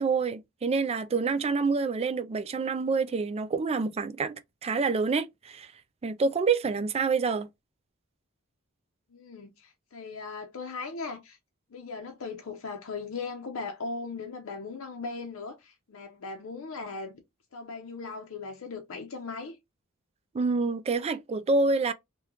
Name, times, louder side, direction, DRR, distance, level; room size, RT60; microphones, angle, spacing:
voice 1, 0.0-5.7 6.0-7.5 20.3-21.9, right 4 dB, 30° right, 0.3 m, -27 dB
voice 2, 9.1-11.4 11.7-17.2 17.5-19.6, left 4 dB, 75° left, 0.6 m, -38 dB
3.0 x 2.2 x 3.5 m
head